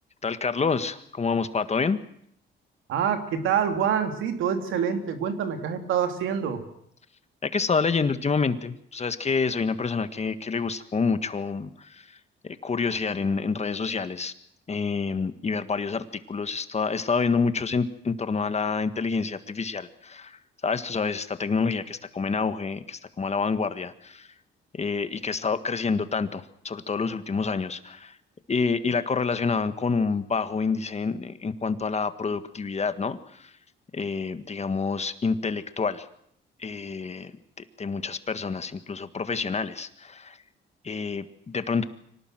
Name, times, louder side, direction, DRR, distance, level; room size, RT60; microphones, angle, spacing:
voice 1, 0.2-2.0 7.4-12.2 12.4-14.3 14.7-20.4 20.6-24.3 24.7-28.2 28.5-33.5 33.9-36.1 36.6-37.3 37.6-40.4 40.8-41.8, left 5 dB, 35° left, 11 dB, 1.7 m, -28 dB
voice 2, 2.9-6.6, right 8 dB, 85° right, 6 dB, 2.9 m, -26 dB
25.0 x 18.5 x 7.7 m, 0.69 s
cardioid pair, 90°, 20 cm